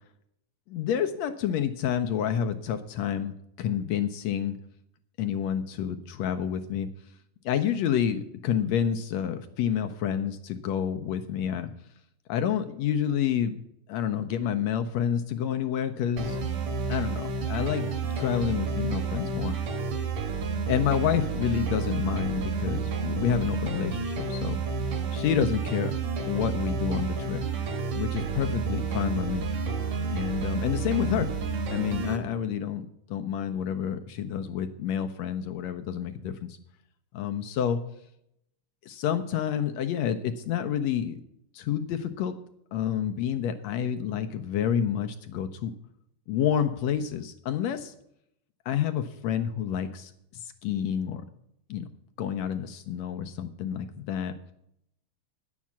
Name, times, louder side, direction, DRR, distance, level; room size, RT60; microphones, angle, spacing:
voice 1, 0.7-4.6 5.2-6.9 7.4-11.7 12.3-13.5 13.9-16.4 16.9-19.5 20.7-24.6 25.1-25.9 26.3-27.4 27.9-29.4 30.1-31.3 31.7-36.6 37.1-37.8 38.8-41.2 41.5-42.3 42.7-45.7 46.3-47.9 48.6-51.2 51.7-51.9 52.2-54.3, left 9 dB, 75° left, 7 dB, 1.7 m, -29 dB
sound 1, 16.2-32.2, right 5 dB, 60° right, 2.7 m, -30 dB
10.5 x 7.4 x 7.2 m, 0.76 s
omnidirectional pair, 3.6 m